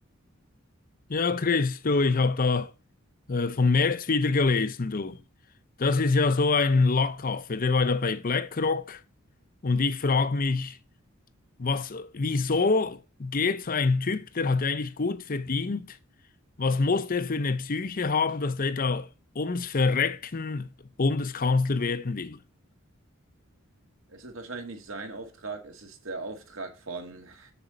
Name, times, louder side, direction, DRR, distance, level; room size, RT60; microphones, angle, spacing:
voice 1, 1.1-2.7 3.3-5.2 5.8-9.0 9.6-10.8 11.6-16.0 16.6-19.1 19.3-20.7 21.0-22.4, left 4 dB, 45° left, 0.7 m, -25 dB
voice 2, 24.1-27.5, right 3 dB, 70° right, 2.1 m, -39 dB
7.0 x 7.0 x 5.1 m
head